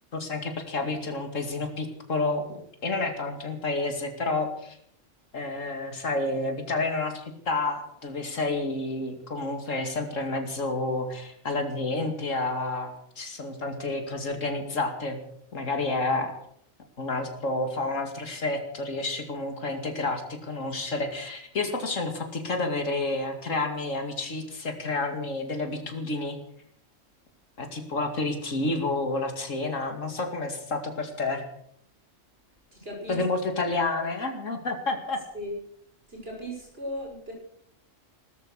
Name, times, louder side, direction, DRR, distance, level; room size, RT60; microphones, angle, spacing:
voice 1, 0.1-4.8 5.3-15.2 15.5-16.3 17.0-26.4 27.6-31.4 33.1-35.2, left 2 dB, 75° left, 5 dB, 2.8 m, -30 dB
voice 2, 32.7-33.2 35.3-35.5 36.1-37.3, equal, 50° right, 0 dB, 6.5 m, -37 dB
17.0 x 13.0 x 6.5 m, 0.69 s
omnidirectional pair, 1.3 m